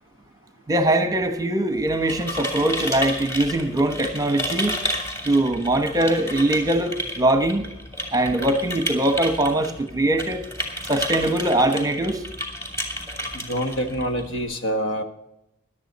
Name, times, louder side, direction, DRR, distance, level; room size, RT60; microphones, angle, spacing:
voice 1, 0.7-4.8 5.2-7.7 8.1-10.4 10.9-12.2, right 1 dB, 15° right, 7 dB, 1.1 m, -22 dB
sound 1, 1.8-14.4, equal, 15° left, 2.7 m, -32 dB
voice 2, 13.3-15.0, equal, 60° left, 6 dB, 1.6 m, -26 dB
16.5 x 11.5 x 4.2 m, 0.84 s
head